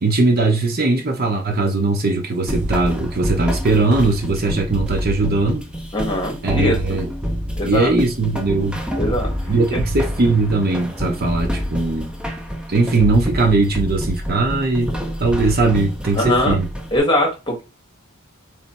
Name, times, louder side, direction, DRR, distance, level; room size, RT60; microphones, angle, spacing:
voice 1, 0.0-5.6 6.4-7.1 7.6-8.8 9.5-12.1 12.7-14.9 15.2-16.7, right 3 dB, 45° right, 0.7 m, -19 dB
sound 1, 2.5-17.0, equal, 5° right, 0.6 m, -27 dB
voice 2, 5.9-7.0 7.6-7.9 9.0-9.3 9.7-9.8 16.1-16.6 16.9-17.6, left 1 dB, 20° left, 1.4 m, -21 dB
3.3 x 3.1 x 4.1 m
head